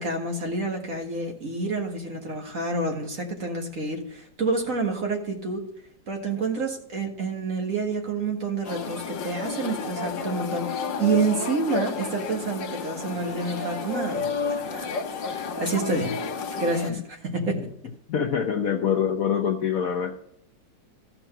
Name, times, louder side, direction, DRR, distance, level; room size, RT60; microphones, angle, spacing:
voice 1, 0.0-5.6 6.1-14.9 15.2-16.2 16.6-17.7, right 3 dB, 45° right, 2 dB, 1.9 m, -28 dB
sound 1, 8.6-16.9, left 4 dB, 90° left, 1.8 m, -31 dB
voice 2, 18.1-20.2, left 7 dB, 60° left, 5 dB, 1.0 m, -25 dB
14.0 x 6.0 x 5.5 m, 0.71 s
omnidirectional pair, 2.0 m